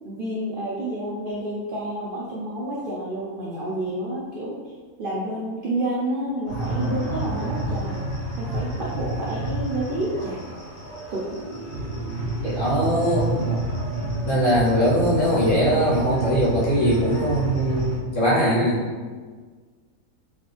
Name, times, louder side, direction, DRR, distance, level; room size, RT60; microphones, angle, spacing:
voice 1, 0.0-4.6 5.0-8.0 8.4-10.4 11.1-11.3, right 1 dB, 60° right, -5 dB, 0.5 m, -29 dB
sound 1, 6.5-18.0, right 2 dB, 85° left, 1.9 m, -29 dB
voice 2, 12.4-13.6 14.2-18.8, equal, 40° left, -7 dB, 1.0 m, -21 dB
3.9 x 3.2 x 3.4 m, 1.5 s
omnidirectional pair, 1.6 m